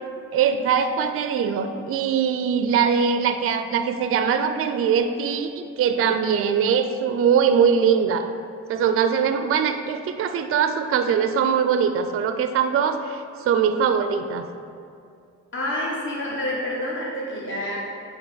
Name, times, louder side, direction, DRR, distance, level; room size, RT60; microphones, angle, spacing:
voice 1, 0.3-8.3 8.7-14.5, right 7 dB, 50° right, 8 dB, 0.4 m, -22 dB
voice 2, 15.5-17.8, left 1 dB, 40° left, -5 dB, 1.5 m, -28 dB
8.1 x 3.4 x 4.0 m, 2.3 s
cardioid pair, 90°, 30 cm